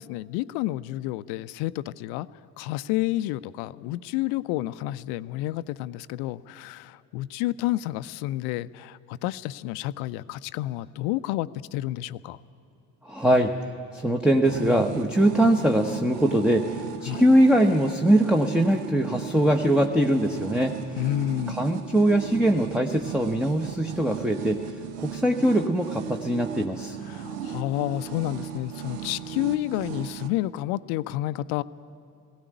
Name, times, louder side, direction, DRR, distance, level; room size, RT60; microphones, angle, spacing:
voice 1, 0.0-2.3 2.6-12.4 17.1-17.2 21.0-21.6 27.1-31.6, left 16 dB, 55° left, 16 dB, 0.6 m, -30 dB
voice 2, 13.0-13.6 13.9-21.1 21.5-24.6 25.0-27.0, right 1 dB, ahead, 4 dB, 0.9 m, -22 dB
sound 1, 14.4-30.3, right 8 dB, 70° right, 1.1 m, -36 dB
17.5 x 16.5 x 9.2 m, 2.4 s
figure-of-eight pair, 55°, 48 cm